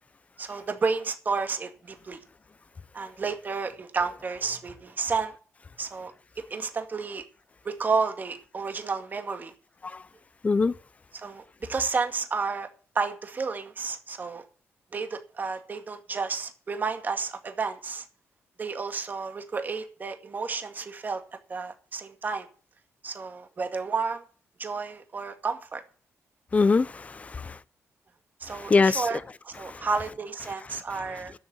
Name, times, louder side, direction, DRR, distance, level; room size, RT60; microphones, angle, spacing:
voice 1, 0.4-2.2 2.9-5.3 5.8-7.2 7.6-9.5 11.1-12.7 13.0-14.4 14.9-18.0 18.6-21.2 21.5-22.5 23.0-24.2 24.6-25.8 28.4-31.3, right 4 dB, 35° right, 2.0 m, -31 dB
voice 2, 10.4-10.7 26.5-27.6 28.5-29.1 29.6-29.9, left 4 dB, 25° left, 0.6 m, -23 dB
12.0 x 6.8 x 8.9 m
cardioid pair, 130°, 5 cm